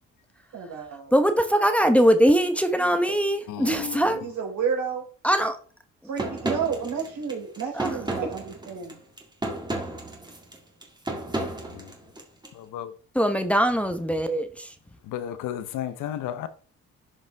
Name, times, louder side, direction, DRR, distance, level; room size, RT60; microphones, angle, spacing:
voice 1, 0.5-1.1 2.8-2.9 4.2-5.0 6.1-9.0, right 6 dB, 70° right, 3.9 m, -31 dB
voice 2, 1.1-4.2 5.2-5.6 7.7-8.0 13.1-14.7, equal, 5° left, 1.0 m, -22 dB
voice 3, 3.5-4.2 12.5-12.9 15.0-16.5, left 10 dB, 85° left, 0.9 m, -33 dB
sound 1, 6.2-12.5, right 1 dB, 15° right, 2.0 m, -33 dB
11.0 x 5.4 x 3.4 m
cardioid pair, 90°, 30 cm